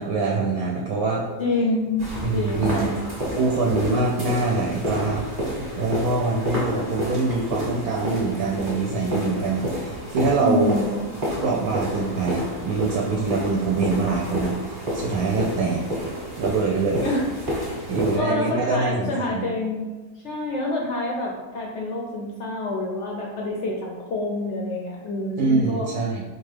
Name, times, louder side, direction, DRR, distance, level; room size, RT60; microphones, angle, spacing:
voice 1, 0.0-1.3 2.2-2.9 3.4-5.3 5.8-10.8 11.4-15.9 16.4-17.1 17.9-19.5 25.4-26.2, right 3 dB, 75° right, -3 dB, 1.0 m, -24 dB
voice 2, 1.4-2.0 2.3-2.9 10.4-10.9 17.0-17.3 17.6-17.8 18.1-19.9 20.2-25.9, left 2 dB, 70° left, -2 dB, 0.7 m, -27 dB
sound 1, 2.0-18.2, equal, 25° right, 1.0 m, -30 dB
4.4 x 2.3 x 3.3 m, 1.2 s
omnidirectional pair, 1.7 m